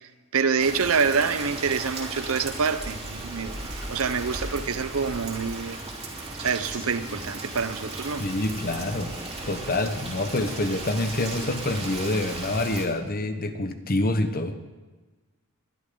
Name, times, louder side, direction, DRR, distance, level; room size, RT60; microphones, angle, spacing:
voice 1, 0.3-5.8 6.4-8.2, right 5 dB, 65° right, 12 dB, 0.7 m, -26 dB
Rain, 0.6-12.9, right 2 dB, 25° right, 3.0 m, -36 dB
voice 2, 8.2-9.1 9.5-14.6, left 2 dB, 45° left, 9 dB, 1.1 m, -27 dB
21.5 x 12.0 x 3.9 m, 1.3 s
head